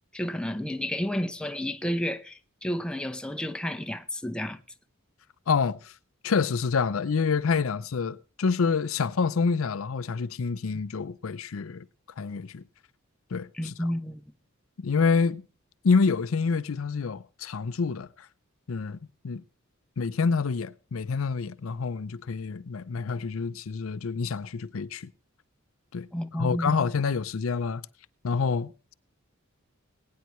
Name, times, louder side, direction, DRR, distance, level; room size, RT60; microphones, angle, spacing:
voice 1, 0.1-4.6 13.6-14.2 26.1-26.8, equal, 5° left, 0.7 m, -31 dB
voice 2, 5.5-5.9 6.2-11.9 12.2-12.6 13.3-13.7 14.8-15.4 15.8-18.1 18.7-19.0 19.2-19.4 20.0-25.1 25.9-26.1 26.4-27.8 28.2-28.9, left 5 dB, 80° left, 0.5 m, -27 dB
21.0 x 9.5 x 3.1 m
head